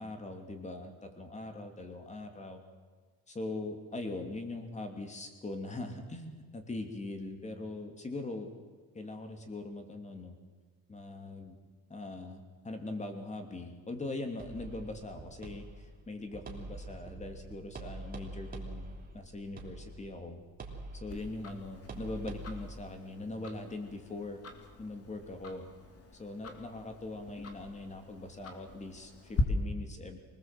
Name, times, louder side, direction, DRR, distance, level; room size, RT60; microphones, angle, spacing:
voice 1, 0.0-2.6 3.3-8.5 8.9-10.4 10.9-11.6 11.9-20.4 20.9-24.4 24.8-25.7 26.2-30.2, left 2 dB, 20° left, 6 dB, 2.9 m, -41 dB
sound 1, 14.4-22.7, right 2 dB, 25° right, 3.0 m, -45 dB
Tick-tock, 21.1-29.4, left 3 dB, 40° left, 3.1 m, -41 dB
25.0 x 20.0 x 7.7 m, 1.5 s
cardioid pair, 150°, 36 cm